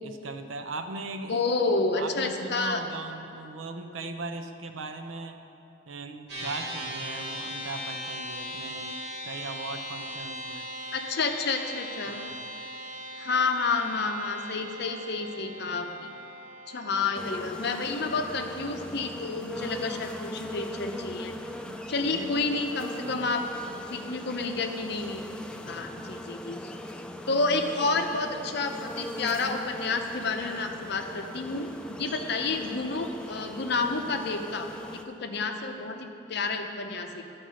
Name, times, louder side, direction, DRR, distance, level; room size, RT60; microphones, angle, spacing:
voice 1, 0.0-1.4 1.9-5.4 5.9-10.7 12.1-12.5 19.5-19.9 21.7-22.7 23.0-23.3 25.6-26.1, right 3 dB, 80° right, 7 dB, 0.6 m, -39 dB
voice 2, 1.3-2.8 10.9-12.2 13.2-16.1 16.7-21.4 21.9-23.4 23.9-25.2 25.7-26.6 27.3-37.2, left 3 dB, 55° left, 5 dB, 0.7 m, -30 dB
sound 1, 6.3-19.8, equal, 50° right, 2.3 m, -40 dB
sound 2, 17.1-35.0, left 1 dB, 5° left, 0.3 m, -40 dB
11.5 x 4.5 x 6.2 m, 2.8 s
head